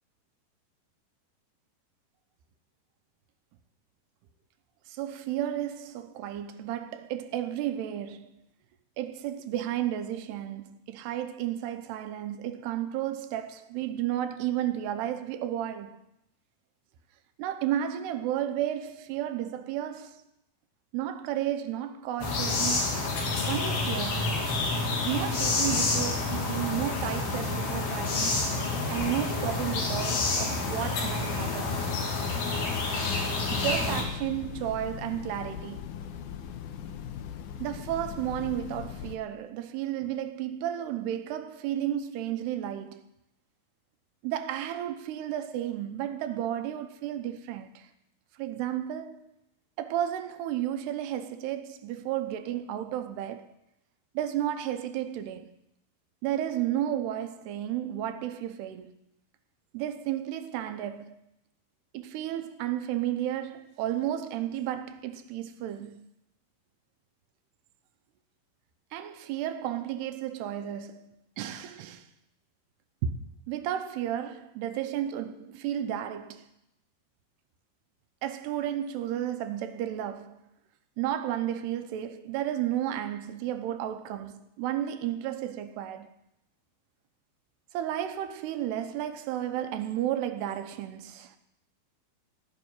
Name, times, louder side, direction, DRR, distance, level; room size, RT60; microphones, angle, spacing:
voice 1, 4.9-8.4 9.0-16.0 17.4-20.2 20.9-23.0 23.5-24.4 25.0-28.4 28.9-31.8 33.5-35.9 37.6-43.1 44.2-47.9 48.4-49.3 49.8-53.5 54.1-55.5 56.2-58.9 59.7-61.2 61.9-66.0 68.9-72.1 73.0-73.1 73.5-76.5 78.2-80.4 81.0-86.1 87.7-91.4, right 11 dB, 85° right, 2.9 m, -32 dB
sound 1, 22.2-34.0, left 3 dB, 70° left, 4.2 m, -28 dB
Train, 33.4-39.2, left 8 dB, 90° left, 1.8 m, -40 dB
17.0 x 6.3 x 9.2 m
omnidirectional pair, 4.8 m